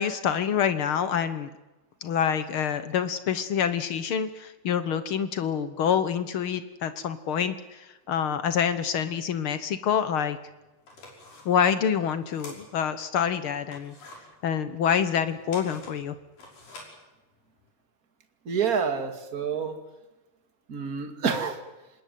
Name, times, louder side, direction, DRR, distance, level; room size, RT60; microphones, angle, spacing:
voice 1, 0.0-1.5 2.0-10.4 11.4-13.9 14.4-16.1, left 8 dB, 65° left, 12 dB, 1.3 m, -26 dB
sound 1, 10.2-10.3 10.7-13.1 13.5-17.7, left 2 dB, 85° left, 7.2 m, -48 dB
voice 2, 18.5-19.8 20.7-21.6, right 6 dB, 30° right, 7 dB, 2.3 m, -28 dB
26.5 x 20.5 x 9.3 m, 1.1 s
omnidirectional pair, 3.8 m